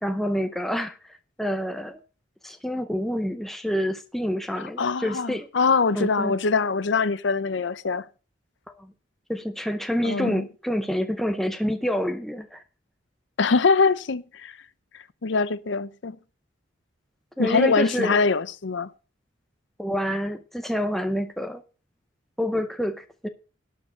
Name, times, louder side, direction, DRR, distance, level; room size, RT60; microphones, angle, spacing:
voice 1, 0.0-2.0 2.4-5.5 5.9-6.4 8.8-8.9 9.3-12.6 17.4-18.2 19.8-21.6 22.4-23.3, equal, ahead, 0.6 m, -28 dB
voice 2, 4.8-8.0 10.0-10.5 13.4-14.5 15.2-16.2 17.4-18.9, left 4 dB, 65° left, 0.6 m, -23 dB
12.0 x 4.6 x 8.1 m
head